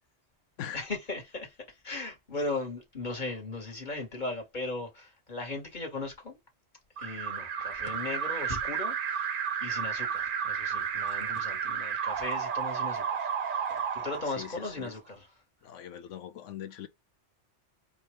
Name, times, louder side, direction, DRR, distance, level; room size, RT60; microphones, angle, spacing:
voice 1, 0.7-6.4 7.0-15.3, left 2 dB, 40° left, 1.6 m, -38 dB
Alarm, 7.0-14.9, right 7 dB, 55° right, 0.7 m, -32 dB
voice 2, 14.0-14.9 15.6-16.9, left 10 dB, 90° left, 1.0 m, -42 dB
4.7 x 2.3 x 3.2 m
omnidirectional pair, 1.2 m